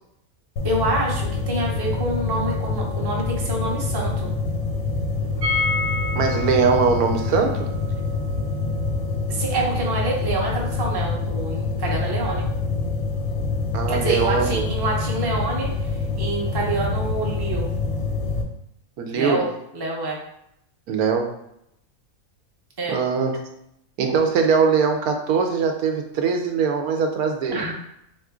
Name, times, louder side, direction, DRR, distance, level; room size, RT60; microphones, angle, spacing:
sound 1, 0.6-18.4, left 3 dB, 75° left, 1.2 m, -26 dB
voice 1, 0.6-4.3 9.3-12.5 13.9-15.7 16.2-17.7 19.1-19.5 19.7-20.2 22.8-23.0 27.5-27.7, right 2 dB, 25° right, -2 dB, 0.6 m, -26 dB
sound 2, 5.4-11.2 11.4-11.5 11.8-11.9, left 3 dB, 65° right, 0.8 m, -31 dB
voice 2, 6.2-7.7 13.7-14.6 19.0-19.4 20.9-21.3 22.9-23.4 24.0-27.6, right 5 dB, 90° right, 4 dB, 1.1 m, -21 dB
3.7 x 3.0 x 3.5 m, 0.77 s
omnidirectional pair, 1.5 m